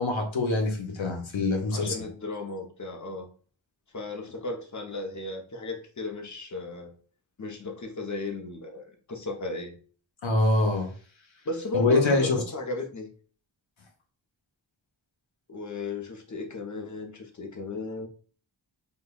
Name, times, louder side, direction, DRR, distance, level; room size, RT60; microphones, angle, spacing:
voice 1, 0.0-1.9 10.2-10.9 11.7-12.4, left 2 dB, 90° left, 3 dB, 0.8 m, -24 dB
voice 2, 1.7-3.3 3.9-7.0 7.4-9.8 11.5-13.1 15.5-18.1, left 2 dB, 40° left, 4 dB, 0.7 m, -35 dB
5.3 x 2.2 x 2.3 m, 0.41 s
wide cardioid pair, 65°, 45 cm